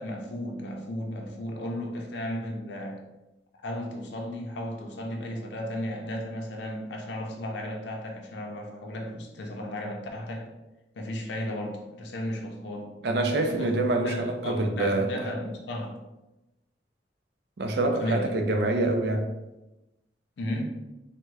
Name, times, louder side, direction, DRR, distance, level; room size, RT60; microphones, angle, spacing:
voice 1, 0.0-3.0 3.6-10.5 10.9-12.9 13.3-13.8 14.0-16.0 17.8-18.3 20.4-20.6, left 1 dB, 85° left, 0.5 m, -34 dB
voice 2, 13.0-15.1 17.6-19.4, right 2 dB, 70° right, 0.4 m, -26 dB
3.4 x 2.1 x 3.1 m
head